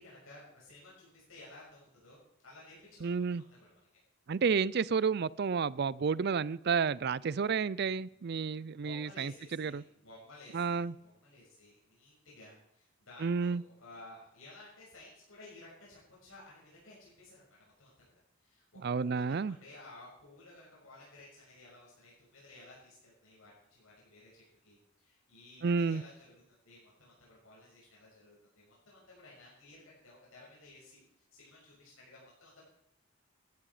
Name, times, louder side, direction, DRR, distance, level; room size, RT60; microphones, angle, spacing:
voice 1, 0.0-3.7 8.7-18.1 18.4-32.6, left 2 dB, 75° left, -6 dB, 6.6 m, -55 dB
voice 2, 3.0-3.4 4.3-9.3 9.6-9.8 10.5-10.9 13.2-13.6 18.8-19.6 25.6-26.0, right 5 dB, 50° right, 21 dB, 0.4 m, -31 dB
15.5 x 12.0 x 4.9 m, 0.79 s
head